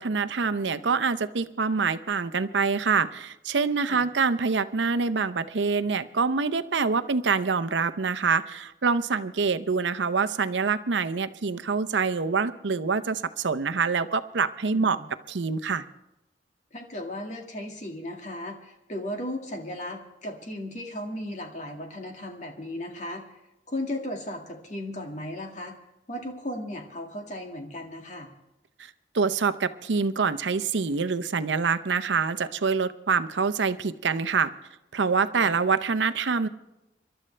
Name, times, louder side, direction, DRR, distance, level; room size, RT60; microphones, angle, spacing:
voice 1, 0.0-15.0 15.3-15.8 29.1-34.5 34.9-36.5, right 5 dB, 90° right, 13 dB, 0.7 m, -25 dB
voice 2, 14.7-15.1 16.7-23.2 23.7-25.8 26.1-28.3 35.3-35.5, left 1 dB, 40° left, 2 dB, 2.0 m, -36 dB
27.5 x 12.5 x 3.3 m, 0.93 s
head